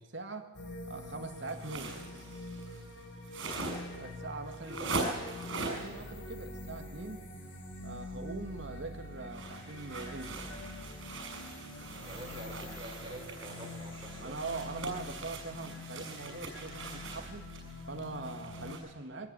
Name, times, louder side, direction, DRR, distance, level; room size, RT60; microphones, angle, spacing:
voice 1, 0.1-0.6 0.9-2.0 3.9-5.1 5.5-7.3 7.8-10.5 14.2-17.5 17.9-19.3, right 3 dB, 70° right, 5 dB, 2.0 m, -42 dB
sound 1, 0.5-18.7, left 1 dB, 70° left, 4.6 m, -45 dB
sound 2, 1.3-6.0 9.2-18.8, right 3 dB, 90° right, 6.3 m, -42 dB
voice 2, 4.6-4.9 12.0-14.4, right 1 dB, 25° right, 1 dB, 4.4 m, -46 dB
22.5 x 19.0 x 9.0 m, 1.3 s
head